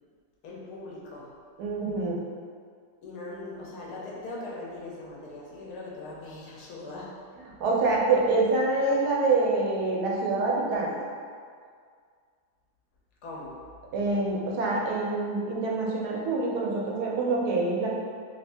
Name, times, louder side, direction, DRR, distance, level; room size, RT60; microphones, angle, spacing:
voice 1, 0.4-1.3 3.0-7.2 13.2-13.6, left 2 dB, 85° left, -5 dB, 1.3 m, -40 dB
voice 2, 1.6-2.2 7.6-10.9 13.9-17.9, right 3 dB, 90° right, -2 dB, 1.2 m, -26 dB
3.1 x 2.6 x 3.3 m, 2.1 s
omnidirectional pair, 1.7 m